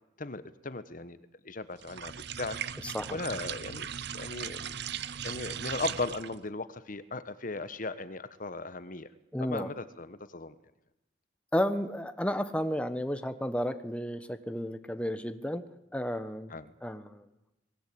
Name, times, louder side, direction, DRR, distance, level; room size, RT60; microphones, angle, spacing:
voice 1, 0.2-2.8 3.1-4.8 5.2-9.1 9.4-10.6 16.5-16.7, left 3 dB, 45° left, 13 dB, 1.2 m, -37 dB
sound 1, 1.8-6.4, right 8 dB, 60° right, 0.8 m, -38 dB
voice 2, 2.8-3.2 9.3-9.7 11.5-15.6 15.9-16.5 16.8-17.3, equal, 5° left, 9 dB, 1.2 m, -32 dB
27.5 x 19.5 x 8.7 m, 0.96 s
head